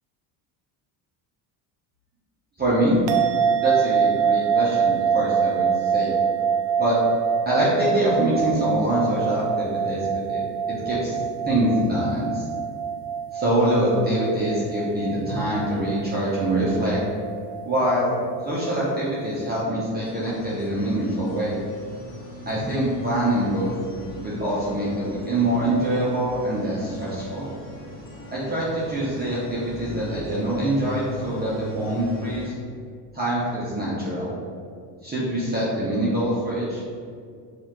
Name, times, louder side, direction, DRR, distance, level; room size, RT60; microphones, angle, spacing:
voice 1, 2.6-3.0 3.6-6.2 6.8-7.0 7.4-10.4 10.8-11.2 11.4-12.5 13.3-17.0 17.6-18.1 18.4-21.6 22.5-23.8 24.2-27.5 28.3-32.5 33.1-34.3 35.0-36.9, right 1 dB, 20° right, -8 dB, 0.9 m, -24 dB
sound 1, 3.1-19.6, right 7 dB, 70° right, 0.6 m, -25 dB
sound 2, 20.0-32.5, right 1 dB, 20° left, 1.3 m, -39 dB
5.4 x 2.8 x 3.1 m, 2.2 s
cardioid pair, 110°, 47 cm